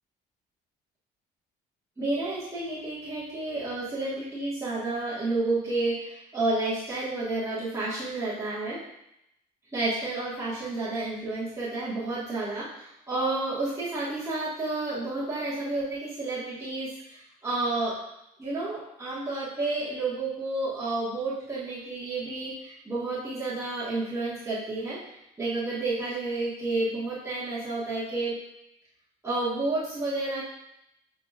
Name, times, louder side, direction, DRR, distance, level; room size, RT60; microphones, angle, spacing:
voice 1, 2.0-8.8 9.7-18.0 18.4-28.4 29.2-30.4, right 2 dB, 15° right, -10 dB, 1.3 m, -30 dB
6.1 x 2.9 x 2.3 m, 0.82 s
cardioid pair, 110°, 17 cm